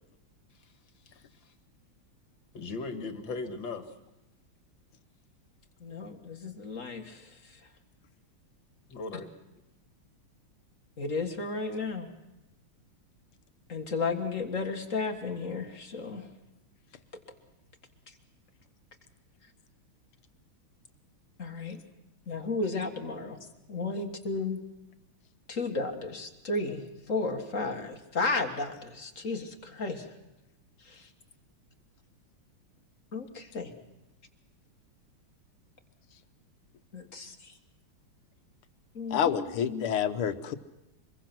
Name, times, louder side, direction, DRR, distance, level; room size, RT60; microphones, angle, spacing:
voice 1, 2.5-3.8 8.9-9.3 23.9-24.0 25.5-25.7, left 3 dB, 65° left, 6 dB, 2.4 m, -38 dB
voice 2, 5.8-7.2 11.0-12.1 13.7-16.3 21.4-21.8 22.3-23.4 23.7-24.6 25.5-26.8 27.1-30.1 33.1-33.7 36.9-37.3 39.0-39.8, left 3 dB, 40° left, 4 dB, 1.9 m, -33 dB
voice 3, 39.1-40.6, left 8 dB, 85° left, 9 dB, 1.9 m, -28 dB
26.0 x 21.5 x 6.0 m, 0.96 s
omnidirectional pair, 2.3 m